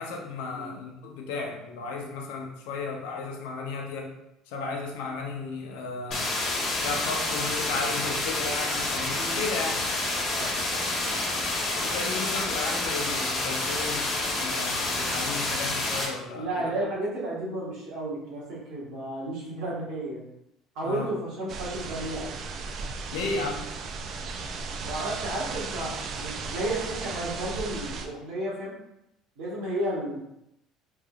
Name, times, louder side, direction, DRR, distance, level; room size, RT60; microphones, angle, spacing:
voice 1, 0.0-4.1 4.5-6.4 6.8-9.8 11.8-16.7 20.8-21.1 23.1-23.6, left 4 dB, 85° left, 1 dB, 0.7 m, -34 dB
sound 1, 6.1-16.1, left 2 dB, 50° left, 1.2 m, -28 dB
voice 2, 16.3-20.2 20.7-22.3 24.8-28.7 29.4-30.2, right 1 dB, 80° right, -6 dB, 1.5 m, -32 dB
sound 2, 21.5-28.1, right 4 dB, 50° right, 0.4 m, -36 dB
3.6 x 3.3 x 2.4 m, 0.82 s
supercardioid pair, 110°, 0 cm